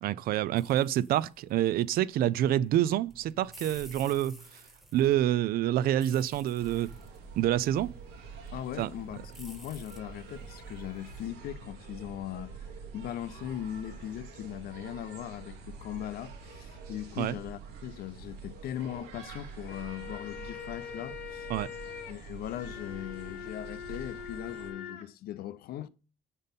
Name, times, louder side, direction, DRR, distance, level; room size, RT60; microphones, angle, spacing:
voice 1, 0.0-4.4 4.9-6.9 7.4-7.9 8.8-8.9 17.2-17.4 21.5-21.7, right 12 dB, 65° right, 0.4 m, -27 dB
sound 1, 0.5-11.2, right 1 dB, ahead, 1.0 m, -53 dB
sound 2, 6.6-24.7, right 5 dB, 90° right, 1.4 m, -46 dB
voice 2, 8.5-12.7 12.9-21.5 22.1-25.9, left 11 dB, 65° left, 0.5 m, -39 dB
sound 3, 19.5-25.0, left 8 dB, 90° left, 1.2 m, -43 dB
5.3 x 4.1 x 5.2 m
cardioid pair, 110°, 17 cm